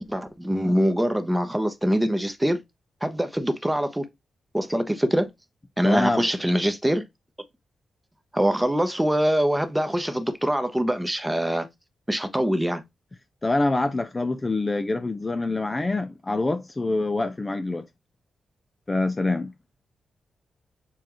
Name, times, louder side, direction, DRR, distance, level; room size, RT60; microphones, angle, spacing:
voice 1, 0.1-2.6 3.0-4.1 4.5-5.3 5.8-7.0 8.3-11.7 12.1-12.8, equal, 10° right, 0.8 m, -23 dB
voice 2, 5.8-6.2 13.4-17.8 18.9-19.5, left 2 dB, 25° left, 0.4 m, -25 dB
6.8 x 2.5 x 3.0 m
cardioid pair, 90°, 0 cm